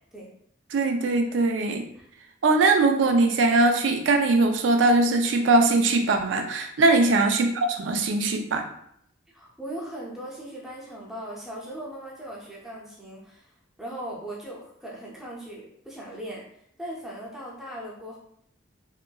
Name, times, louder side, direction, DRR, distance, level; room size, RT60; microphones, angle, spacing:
voice 1, 0.7-1.9 2.4-8.6, right 3 dB, 85° right, 5 dB, 0.4 m, -21 dB
voice 2, 9.3-13.5 13.8-16.4 16.8-18.2, right 1 dB, ahead, -5 dB, 0.6 m, -38 dB
2.8 x 2.4 x 2.2 m, 0.70 s
head